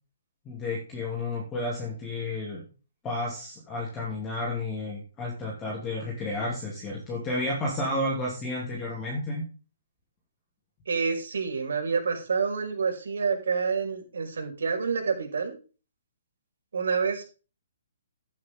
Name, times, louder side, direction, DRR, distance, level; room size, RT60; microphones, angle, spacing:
voice 1, 0.4-2.6 3.0-9.4, left 2 dB, 10° left, -4 dB, 2.8 m, -31 dB
voice 2, 10.9-15.6 16.7-17.2, right 5 dB, 85° right, 2 dB, 5.6 m, -28 dB
12.5 x 8.5 x 3.8 m, 0.34 s
hypercardioid pair, 170°, 0 cm